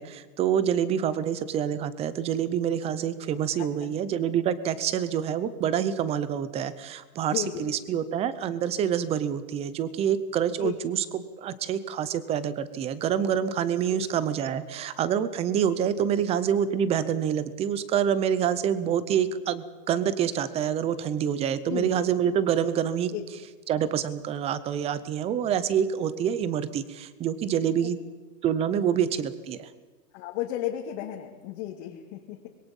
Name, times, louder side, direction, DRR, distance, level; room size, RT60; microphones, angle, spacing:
voice 1, 0.0-23.1 23.7-28.0 28.4-29.7, right 9 dB, 15° right, 15 dB, 0.6 m, -27 dB
voice 2, 3.6-4.0 7.2-7.7 10.6-10.8 13.9-14.1 16.2-16.3 21.7-21.9 23.1-23.2 27.8-27.9 30.1-32.5, left 12 dB, 40° left, 0 dB, 2.6 m, -34 dB
25.0 x 22.0 x 5.4 m, 1.3 s
hypercardioid pair, 145°, 50 cm